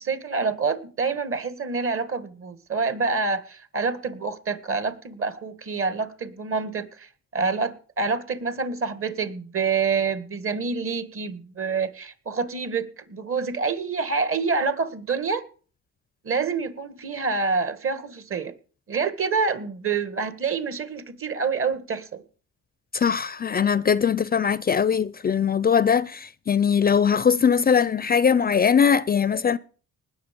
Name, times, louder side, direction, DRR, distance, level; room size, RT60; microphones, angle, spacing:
voice 1, 0.0-15.4 16.2-18.5 18.9-22.2, right 4 dB, 45° right, 1.8 m, -27 dB
voice 2, 22.9-29.6, left 7 dB, 30° left, 0.5 m, -21 dB
19.5 x 6.6 x 5.3 m
cardioid pair, 90°, 30 cm